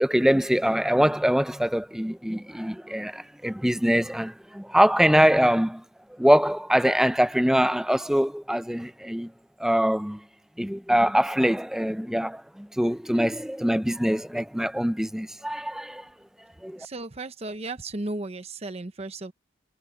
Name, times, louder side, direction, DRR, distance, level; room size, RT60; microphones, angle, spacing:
voice 1, 0.0-5.8 6.2-9.3 9.6-10.2 10.6-16.0 16.6-16.8, equal, ahead, 0.5 m, -23 dB
voice 2, 16.8-19.3, right 2 dB, 30° right, 0.8 m, -35 dB
head